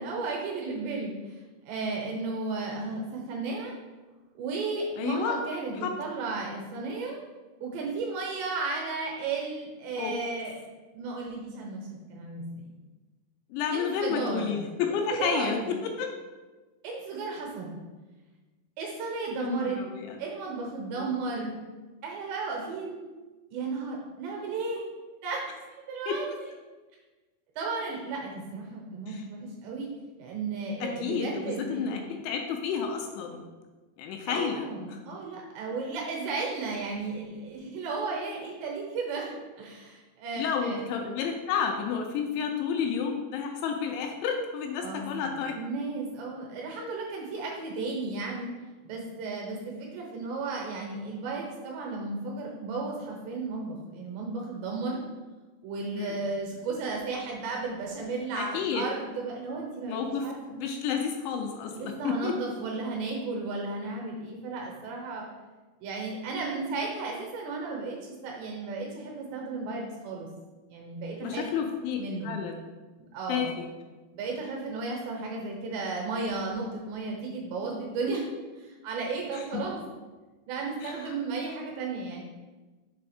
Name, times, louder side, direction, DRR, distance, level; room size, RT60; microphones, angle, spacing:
voice 1, 0.0-1.4 1.6-3.8 4.4-7.2 7.6-10.5 10.9-12.7 13.7-14.6 15.2-15.7 16.8-17.8 18.8-19.8 20.2-21.6 22.0-23.1 23.5-24.9 25.2-25.4 25.9-26.5 27.6-29.9 30.2-32.0 34.3-40.8 44.8-48.5 48.8-55.0 55.6-60.7 61.7-65.3 65.8-70.3 70.7-71.4 72.0-72.4 73.1-73.5 74.1-78.3 78.6-79.8 80.5-82.2, right 3 dB, 75° right, 0 dB, 2.8 m, -34 dB
voice 2, 5.0-5.4 5.8-5.9 10.0-10.1 13.5-16.1 19.4-20.2 21.0-21.1 26.1-26.2 29.1-29.2 30.8-33.4 34.0-35.0 40.4-45.6 56.0-56.2 58.4-58.9 59.9-62.4 71.2-72.0 72.2-72.6 73.3-73.7 79.3-79.7 80.8-81.2, left 6 dB, 85° left, 3 dB, 2.7 m, -31 dB
6.9 x 3.4 x 4.9 m, 1.2 s
omnidirectional pair, 5.5 m